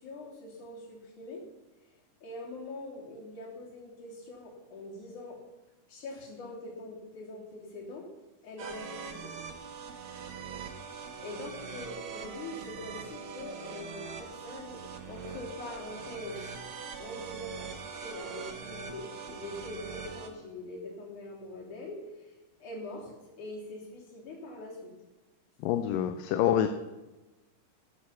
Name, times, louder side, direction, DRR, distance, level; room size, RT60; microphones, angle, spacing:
voice 1, 0.0-1.4 2.2-5.4 5.9-8.1 8.4-9.3 11.2-16.4 17.0-22.3 22.6-24.9, left 2 dB, 60° left, -2 dB, 4.4 m, -43 dB
sound 1, 8.6-20.3, right 6 dB, 70° right, 1.2 m, -42 dB
voice 2, 25.6-26.7, left 10 dB, 85° left, 8 dB, 2.3 m, -26 dB
14.0 x 9.4 x 5.6 m, 1.1 s
omnidirectional pair, 3.9 m